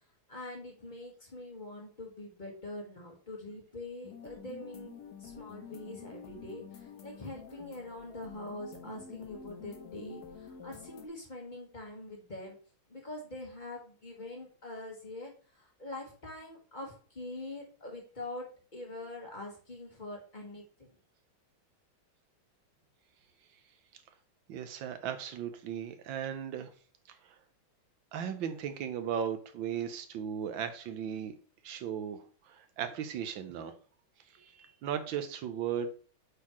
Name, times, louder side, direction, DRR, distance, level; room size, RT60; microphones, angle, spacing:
voice 1, 0.3-4.9 5.2-12.6 12.9-15.3 15.6-20.9, left 2 dB, 25° left, 0 dB, 1.5 m, -44 dB
sound 1, 4.0-11.1, left 7 dB, 60° left, 1.2 m, -49 dB
voice 2, 24.5-26.7 28.1-31.3 31.6-32.2 32.5-33.7 34.4-35.9, right 8 dB, 70° right, 8 dB, 1.5 m, -36 dB
8.4 x 4.1 x 3.1 m, 0.39 s
omnidirectional pair, 2.3 m